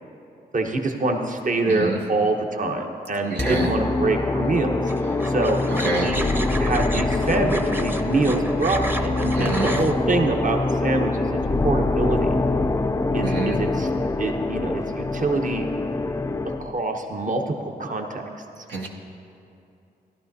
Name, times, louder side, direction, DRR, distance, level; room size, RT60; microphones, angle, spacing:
voice 1, 0.5-4.8 5.3-5.6 6.0-11.4 11.6-12.4 13.1-13.9 14.2-15.7 16.4-18.2, right 2 dB, 45° right, 3 dB, 1.0 m, -25 dB
voice 2, 1.7-2.0 3.3-3.7 5.8-6.1 9.3-9.7 13.2-13.6 18.7-18.9, right 3 dB, 80° right, -1 dB, 0.9 m, -27 dB
sound 1, 3.4-16.7, left 2 dB, 15° left, 0.4 m, -24 dB
sound 2, 4.9-9.9, right 1 dB, 10° right, 0.7 m, -32 dB
13.5 x 11.0 x 2.7 m, 2.7 s
supercardioid pair, 40°, 18 cm